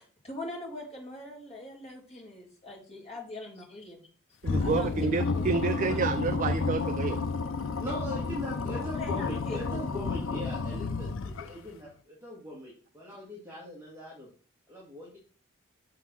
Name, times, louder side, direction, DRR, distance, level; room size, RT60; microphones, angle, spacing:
voice 1, 0.2-4.0 4.6-5.4 5.8-6.0 8.8-9.8, left 2 dB, 30° left, 2.1 m, -42 dB
sound 1, 4.4-11.7, left 4 dB, 60° left, 0.5 m, -31 dB
voice 2, 4.4-7.2, right 5 dB, 35° right, 0.3 m, -29 dB
voice 3, 7.8-14.3 14.7-15.2, equal, 10° right, 1.7 m, -40 dB
6.3 x 3.8 x 6.0 m
head